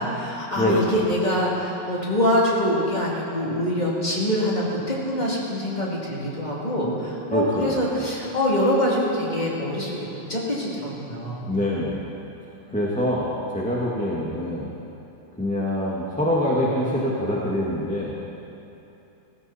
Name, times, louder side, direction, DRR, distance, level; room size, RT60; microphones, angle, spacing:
voice 1, 0.0-11.5 12.7-12.8, equal, 20° left, -6 dB, 2.8 m, -25 dB
voice 2, 0.6-1.0 7.3-8.1 11.4-12.1 12.7-14.7 15.4-18.2, left 1 dB, 5° left, -6 dB, 1.4 m, -25 dB
17.5 x 15.5 x 4.2 m, 2.8 s
omnidirectional pair, 2.4 m